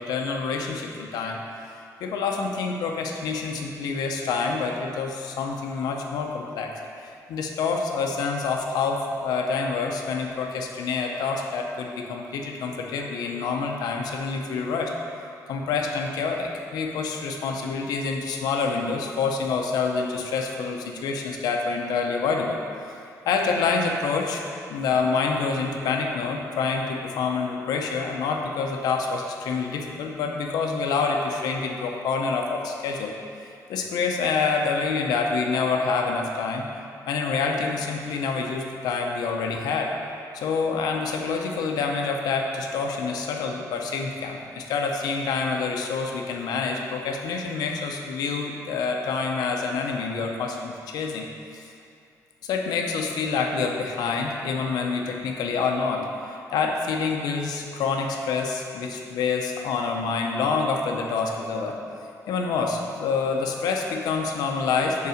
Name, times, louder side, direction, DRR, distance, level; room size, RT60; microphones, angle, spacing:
voice 1, 0.0-1.4 2.0-6.8 7.3-14.9 15.5-22.6 23.3-24.4 24.7-33.1 33.7-36.6 37.1-39.9 40.3-51.2 51.5-51.7 52.4-61.8 62.3-65.1, left 4 dB, 85° left, 2 dB, 0.8 m, -27 dB
5.6 x 4.7 x 6.4 m, 2.5 s
cardioid pair, 160°, 7 cm